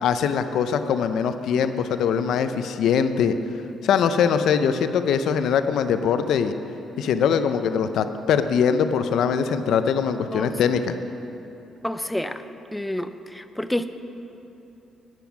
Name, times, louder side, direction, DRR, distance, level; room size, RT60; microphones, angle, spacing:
voice 1, 0.0-3.4 3.8-6.5 7.0-11.0, left 7 dB, 75° left, 10 dB, 0.6 m, -22 dB
voice 2, 11.8-12.4 12.7-13.9, left 1 dB, 5° left, 10 dB, 0.5 m, -28 dB
10.5 x 9.2 x 6.0 m, 3.0 s
cardioid pair, 90°, 0 cm